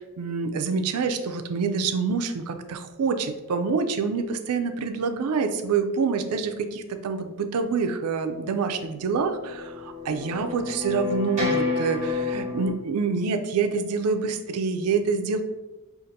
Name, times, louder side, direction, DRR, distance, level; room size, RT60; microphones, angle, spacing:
voice 1, 0.0-15.4, right 5 dB, 90° right, 8 dB, 0.4 m, -26 dB
sound 1, 9.1-12.7, left 4 dB, 30° right, 1.1 m, -29 dB
5.0 x 2.5 x 2.7 m, 1.1 s
head